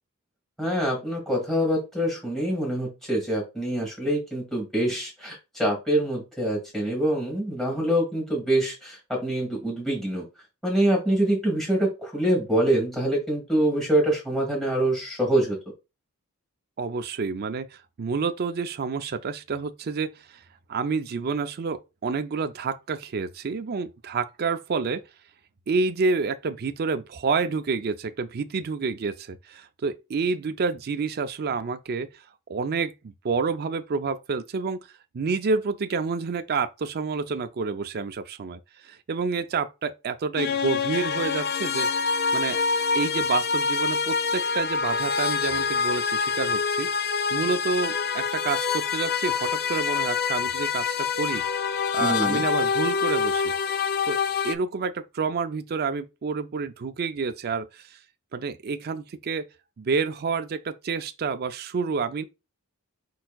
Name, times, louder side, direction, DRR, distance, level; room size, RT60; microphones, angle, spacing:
voice 1, 0.6-10.2 10.6-15.6 52.0-52.4, right 1 dB, ahead, 1.9 m, -25 dB
voice 2, 16.8-20.4 20.7-25.0 25.7-32.1 32.5-34.8 35.1-41.9 42.3-42.6 42.9-46.9 47.3-51.4 51.9-53.5 54.1-54.2 54.4-57.8 58.3-59.5 59.8-62.3, right 4 dB, 45° right, 0.4 m, -29 dB
sound 1, 40.4-54.5, left 5 dB, 45° left, 0.4 m, -26 dB
4.8 x 4.4 x 2.3 m
head